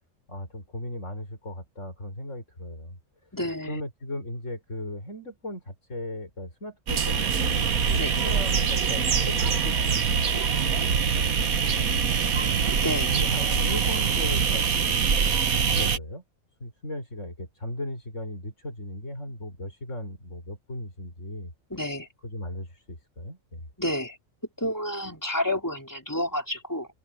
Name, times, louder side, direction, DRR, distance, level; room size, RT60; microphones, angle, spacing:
voice 1, 0.3-3.0 3.7-12.6 13.1-16.2 16.6-21.5 22.2-23.6, left 1 dB, 60° left, 7.1 m, -37 dB
voice 2, 3.3-3.8 8.0-8.1 12.8-13.1 21.7-22.1 23.8-24.2 24.6-26.9, left 1 dB, 15° left, 4.0 m, -29 dB
sound 1, 6.9-16.0, right 6 dB, 80° right, 1.8 m, -24 dB
omnidirectional pair, 1.5 m